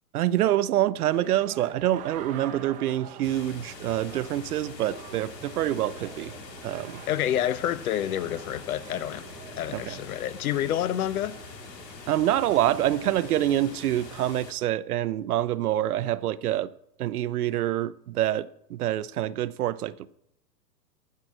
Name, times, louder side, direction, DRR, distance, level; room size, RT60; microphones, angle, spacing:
voice 1, 0.1-6.3 6.6-7.0 9.7-10.0 12.1-16.7 17.0-19.9, right 13 dB, 65° right, 0.7 m, -26 dB
sound 1, 1.1-14.2, right 7 dB, 15° right, 0.7 m, -46 dB
sound 2, 3.2-14.5, left 5 dB, 85° left, 1.9 m, -44 dB
voice 2, 7.1-9.3 9.6-11.4, left 11 dB, 60° left, 0.7 m, -28 dB
15.0 x 5.7 x 6.1 m
hypercardioid pair, 145°, 49 cm